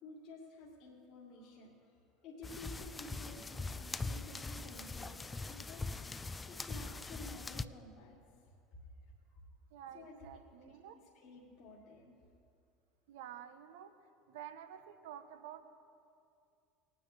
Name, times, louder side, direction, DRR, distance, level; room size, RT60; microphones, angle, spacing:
voice 1, 0.0-8.2 9.3-9.4 9.9-12.2, left 2 dB, 55° left, -4 dB, 2.1 m, -53 dB
sound 1, 2.4-7.6, left 3 dB, 20° left, 0.5 m, -42 dB
voice 2, 9.7-10.9 13.1-13.9 14.3-15.6, right 10 dB, 70° right, 9 dB, 0.9 m, -50 dB
20.5 x 9.2 x 3.4 m, 2.4 s
hypercardioid pair, 75°, 0 cm